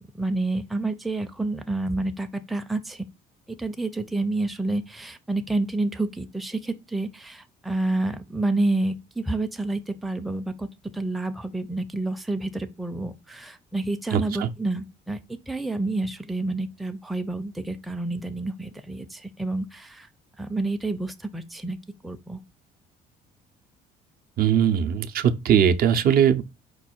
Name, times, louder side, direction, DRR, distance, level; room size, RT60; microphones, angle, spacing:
voice 1, 0.1-3.0 3.5-10.7 10.9-20.1 20.4-21.8 22.0-22.4, right 2 dB, ahead, 0.4 m, -29 dB
voice 2, 14.1-14.5 24.4-26.4, right 9 dB, 60° right, 0.6 m, -20 dB
4.7 x 2.3 x 4.3 m
cardioid pair, 110°, 17 cm